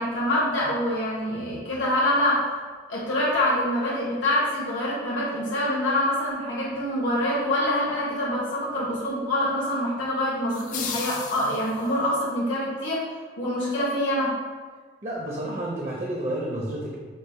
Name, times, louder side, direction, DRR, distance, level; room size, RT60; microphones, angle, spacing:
voice 1, 0.0-2.4 2.9-14.3, left 1 dB, 80° left, -7 dB, 0.9 m, -25 dB
sound 1, 10.5-12.1, left 7 dB, 40° left, 0.3 m, -35 dB
voice 2, 15.0-17.0, right 1 dB, 35° right, -3 dB, 0.5 m, -30 dB
5.2 x 2.1 x 4.1 m, 1.5 s
head